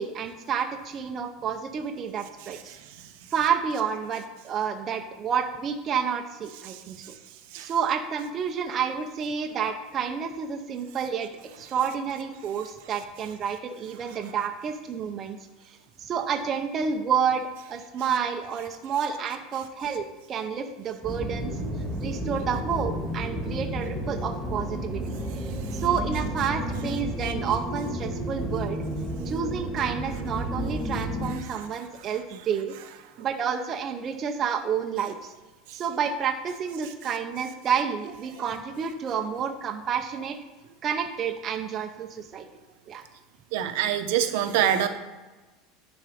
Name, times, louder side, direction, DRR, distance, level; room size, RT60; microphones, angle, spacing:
voice 1, 0.0-2.8 3.3-7.1 7.6-11.3 11.6-15.4 15.6-21.5 22.0-25.1 25.7-28.8 29.3-32.7 33.2-35.3 35.7-40.4 40.8-42.5 42.9-43.0, right 7 dB, 25° right, 4 dB, 0.6 m, -29 dB
sound 1, 21.0-31.3, equal, ahead, 1.6 m, -31 dB
voice 2, 43.5-44.9, right 10 dB, 65° right, 8 dB, 0.8 m, -24 dB
10.5 x 4.3 x 5.0 m, 1.2 s
supercardioid pair, 170°, 0 cm